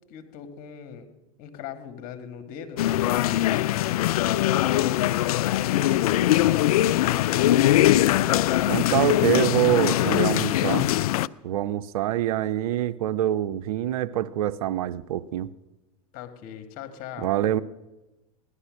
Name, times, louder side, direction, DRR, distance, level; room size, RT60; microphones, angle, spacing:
voice 1, 0.1-1.1 1.4-4.7 5.4-8.3 8.7-9.3 16.1-17.3, left 8 dB, 50° left, 2.0 m, -39 dB
sound 1, 2.8-11.3, left 14 dB, 75° left, 0.4 m, -22 dB
voice 2, 8.7-10.9 11.4-15.5 17.2-17.6, right 12 dB, 70° right, 0.6 m, -25 dB
17.0 x 11.5 x 6.4 m
hypercardioid pair, 105°, 19 cm